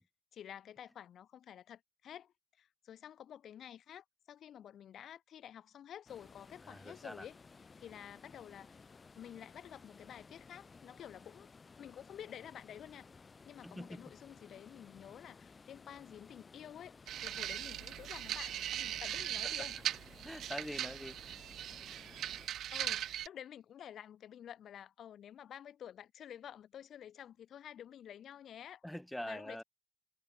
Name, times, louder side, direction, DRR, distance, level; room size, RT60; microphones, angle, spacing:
voice 1, 0.3-8.8 9.2-11.5 11.8-13.1 13.4-19.8 22.7-28.8 29.2-29.6, left 10 dB, 65° left, 0.9 m, -51 dB
sound 1, 6.1-22.5, left 4 dB, 35° left, 1.9 m, -58 dB
voice 2, 6.7-7.2 13.6-14.0 20.2-21.1 28.8-29.6, equal, 5° left, 0.8 m, -44 dB
sound 2, 17.1-23.3, right 11 dB, 75° right, 0.6 m, -39 dB
cardioid pair, 90°, 0 cm